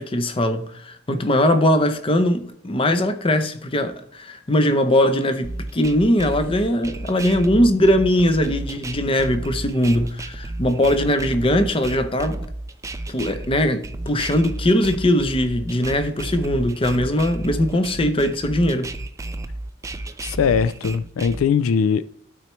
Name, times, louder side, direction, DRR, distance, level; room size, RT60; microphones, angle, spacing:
voice 1, 0.0-12.4 13.1-18.9, left 1 dB, 25° left, 0.6 m, -20 dB
sound 1, 5.4-21.5, right 2 dB, 15° right, 0.3 m, -32 dB
voice 2, 20.2-22.0, left 6 dB, 85° left, 0.4 m, -20 dB
12.5 x 4.4 x 3.1 m
head